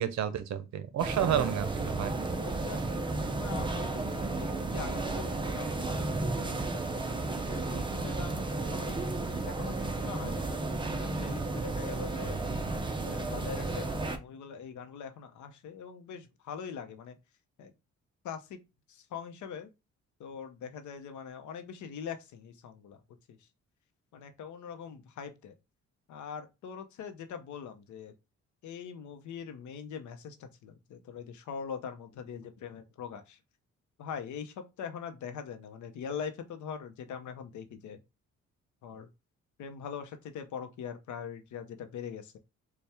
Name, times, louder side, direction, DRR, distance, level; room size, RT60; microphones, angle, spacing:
voice 1, 0.0-2.1, right 9 dB, 65° right, 0.7 m, -30 dB
sound 1, 1.0-14.2, right 2 dB, 15° right, 0.6 m, -33 dB
voice 2, 2.3-2.8 3.3-7.2 7.5-9.0 9.4-12.4 13.0-17.2 17.6-17.7 18.2-18.6 18.9-19.7 20.2-23.0 23.3-23.4 24.1-25.5 26.1-28.1 28.6-33.4 34.0-38.0 38.8-39.1 39.6-42.4, left 7 dB, 75° left, 0.7 m, -42 dB
4.3 x 2.3 x 3.4 m
cardioid pair, 90°, 30 cm